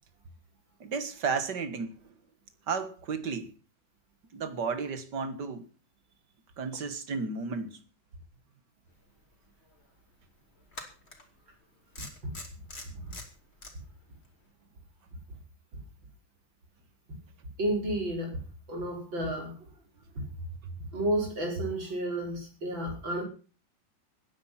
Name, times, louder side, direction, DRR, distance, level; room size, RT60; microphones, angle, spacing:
voice 1, 0.8-2.0 2.7-3.5 4.3-5.7 6.6-7.8, right 5 dB, 65° right, 2.3 m, -33 dB
sound 1, 9.3-9.4 10.7-11.2 12.0-13.7, left 2 dB, 30° left, 3.4 m, -43 dB
voice 2, 17.6-18.4 18.7-19.5 20.2-20.3 20.9-23.2, right 1 dB, 85° right, 6.0 m, -31 dB
17.0 x 10.5 x 5.9 m
omnidirectional pair, 2.0 m